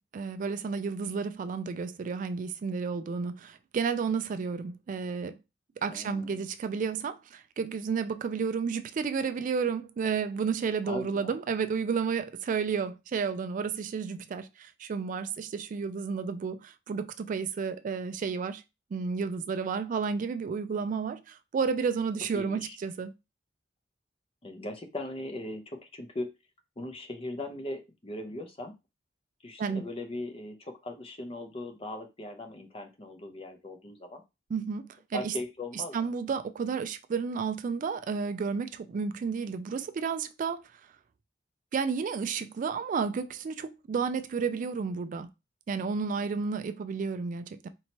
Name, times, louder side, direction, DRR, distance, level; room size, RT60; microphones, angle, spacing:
voice 1, 0.1-5.4 5.8-18.6 18.9-23.1 29.6-29.9 34.5-35.4 35.7-40.6 41.7-45.3 45.7-47.7, right 5 dB, 45° right, 0.3 m, -31 dB
voice 2, 5.9-6.4 10.8-11.4 22.3-22.8 24.4-26.3 26.8-28.7 29.4-34.2 35.1-36.1, left 1 dB, 30° left, 0.7 m, -39 dB
4.4 x 2.8 x 2.9 m
head